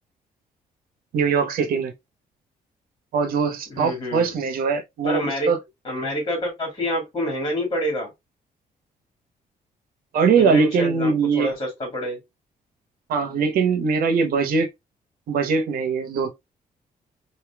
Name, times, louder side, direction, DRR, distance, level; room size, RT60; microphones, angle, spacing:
voice 1, 1.1-1.9 3.1-5.6 10.1-11.5 13.1-14.7 15.3-16.3, right 5 dB, 80° right, 1.0 m, -21 dB
voice 2, 3.7-4.4 5.0-5.5 5.8-8.1 10.4-12.2, equal, 25° left, 2.5 m, -27 dB
5.0 x 2.7 x 2.2 m
cardioid pair, 165°, 15 cm